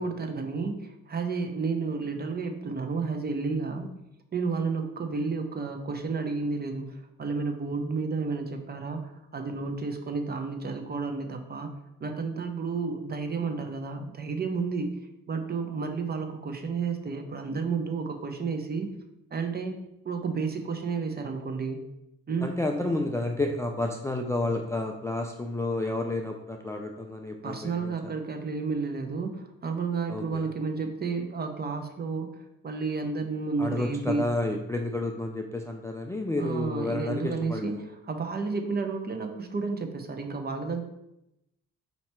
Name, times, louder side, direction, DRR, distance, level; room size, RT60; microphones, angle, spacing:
voice 1, 0.0-3.9 4.3-11.7 12.0-15.0 15.3-18.9 19.3-19.8 20.0-21.8 22.3-22.5 27.4-32.4 32.6-34.2 36.4-40.8, right 4 dB, 30° right, 5 dB, 0.7 m, -31 dB
voice 2, 22.4-28.1 30.1-30.4 33.6-37.8, left 2 dB, 10° left, 2 dB, 0.3 m, -30 dB
4.3 x 2.8 x 4.4 m, 0.85 s
cardioid pair, 90°, 30 cm